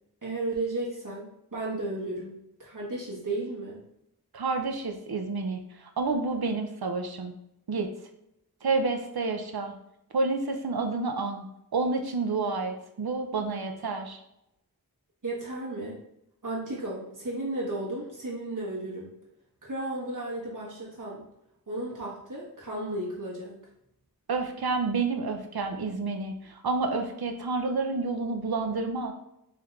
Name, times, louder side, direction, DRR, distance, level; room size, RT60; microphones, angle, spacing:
voice 1, 0.2-2.3 2.6-3.8 15.2-16.0 16.4-19.1 19.6-21.2 21.7-23.6, right 2 dB, 55° right, -6 dB, 1.4 m, -34 dB
voice 2, 4.3-7.3 7.7-7.9 8.6-9.7 10.1-11.4 11.7-14.2 24.3-29.1, right 3 dB, 85° right, 5 dB, 0.6 m, -29 dB
3.6 x 3.3 x 3.2 m, 0.81 s
wide cardioid pair, 45°, 37 cm